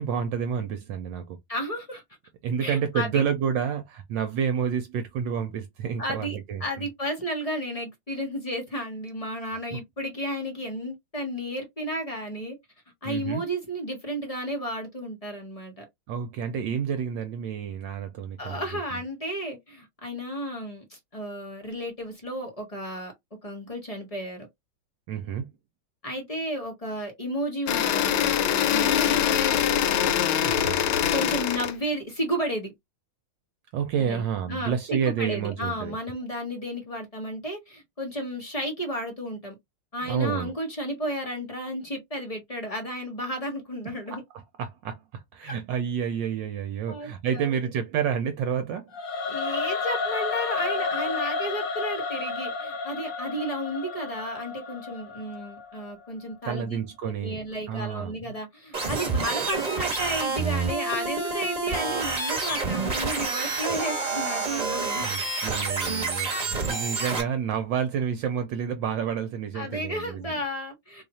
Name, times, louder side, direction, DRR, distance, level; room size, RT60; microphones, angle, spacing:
voice 1, 0.0-1.4 2.4-6.9 9.7-9.8 13.0-13.4 16.1-19.0 25.1-25.5 30.4-30.8 33.7-36.0 40.0-40.5 44.1-48.9 56.4-58.3 63.2-63.4 65.0-70.4, right 7 dB, 75° right, 1.2 m, -29 dB
voice 2, 1.5-2.0 2.6-3.2 6.0-12.6 13.0-15.8 18.4-23.1 23.4-24.5 26.0-30.0 31.1-32.7 34.0-34.2 34.5-39.6 39.9-44.2 45.4-45.5 46.9-47.6 49.3-56.8 57.0-65.1 66.7-67.0 69.5-71.0, equal, 30° left, 0.6 m, -33 dB
sound 1, 27.7-31.7, left 10 dB, 80° left, 1.4 m, -23 dB
Singing / Musical instrument, 48.9-56.0, left 4 dB, 60° left, 0.9 m, -31 dB
sound 2, 58.7-67.2, right 4 dB, 30° right, 1.0 m, -28 dB
3.2 x 2.4 x 4.1 m
omnidirectional pair, 2.2 m